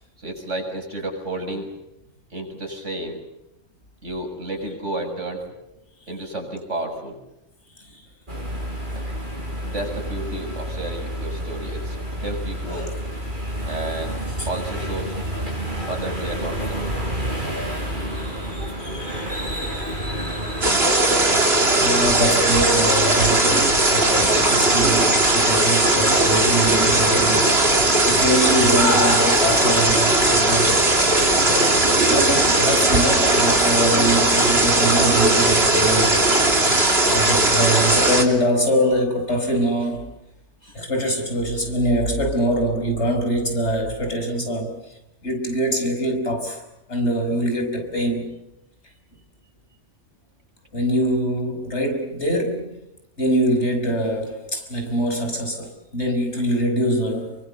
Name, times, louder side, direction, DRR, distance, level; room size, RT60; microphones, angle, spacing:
voice 1, 0.2-1.7 2.3-3.2 4.0-5.4 6.1-7.2 9.0-9.1 9.6-12.9 13.7-14.1 14.5-15.2 15.9-17.0, right 1 dB, 80° right, 7.4 m, -31 dB
sound 1, 8.3-20.7, equal, 40° right, 6.8 m, -29 dB
voice 2, 18.1-21.0 21.8-30.9 32.1-36.4 37.1-40.1 40.6-44.8 45.2-46.6 46.9-48.4 50.7-52.8 53.2-57.4, right 1 dB, 65° left, 5.9 m, -24 dB
sound 2, 20.6-38.2, right 2 dB, 55° right, 3.7 m, -18 dB
29.5 x 24.0 x 7.0 m
omnidirectional pair, 1.2 m